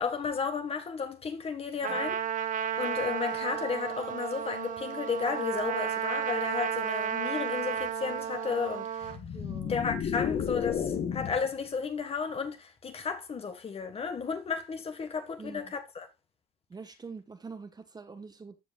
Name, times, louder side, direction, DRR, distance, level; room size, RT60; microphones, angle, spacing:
voice 1, 0.0-2.2 2.8-9.2 9.7-16.1, left 5 dB, 35° left, 1.6 m, -33 dB
Trumpet, 1.8-9.2, right 8 dB, 50° right, 1.0 m, -33 dB
sound 1, 9.0-11.5, left 8 dB, 55° left, 1.6 m, -32 dB
voice 2, 9.3-9.8 15.4-15.7 16.7-18.6, right 4 dB, 25° right, 1.3 m, -45 dB
14.0 x 5.3 x 2.4 m
cardioid pair, 110°, 17 cm